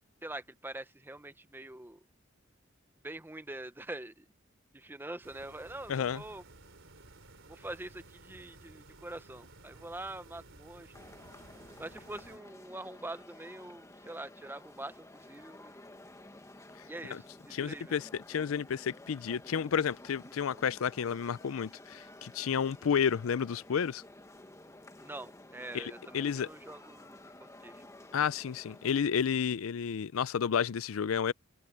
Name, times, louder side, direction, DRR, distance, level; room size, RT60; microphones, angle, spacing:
voice 1, 0.2-2.0 3.0-4.3 4.7-6.4 7.5-10.9 11.8-15.8 16.9-18.0 25.0-27.8, right 2 dB, 10° right, 0.8 m, -44 dB
sound 1, 5.2-12.4, right 2 dB, 65° right, 4.0 m, -55 dB
voice 2, 5.9-6.2 17.0-17.2 17.5-24.0 25.7-26.5 28.1-31.3, left 7 dB, 85° left, 0.5 m, -31 dB
sound 2, 10.9-29.0, left 1 dB, 15° left, 1.6 m, -53 dB
head